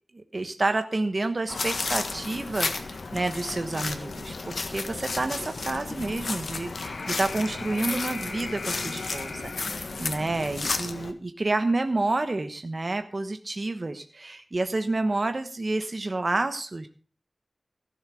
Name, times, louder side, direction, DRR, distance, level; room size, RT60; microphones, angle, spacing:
voice 1, 0.1-16.9, right 2 dB, 50° right, 8 dB, 1.1 m, -29 dB
sound 1, 1.5-11.1, left 3 dB, 85° left, 1.4 m, -32 dB
15.5 x 7.3 x 6.3 m, 0.41 s
wide cardioid pair, 70°, 0 cm